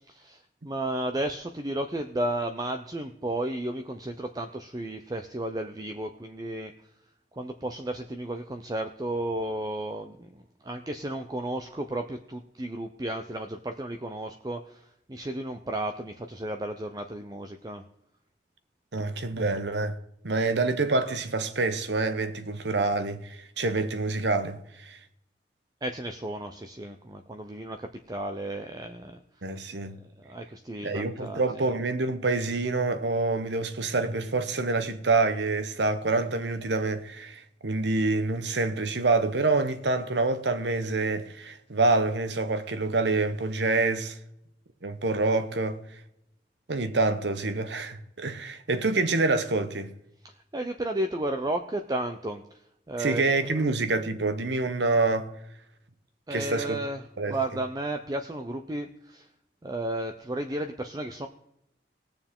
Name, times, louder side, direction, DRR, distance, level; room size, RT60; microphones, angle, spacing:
voice 1, 0.1-6.7 7.3-14.8 15.1-17.8 25.8-29.2 30.2-31.4 50.2-52.4 52.9-53.3 56.3-57.0 57.3-59.3 59.6-61.3, right 1 dB, 20° right, 0.5 m, -33 dB
voice 2, 18.9-20.0 20.2-25.0 29.4-30.0 30.8-44.2 44.8-45.8 46.7-49.9 53.0-55.3 56.3-56.8 57.2-57.4, right 3 dB, 85° right, 1.0 m, -27 dB
20.5 x 7.0 x 3.7 m
head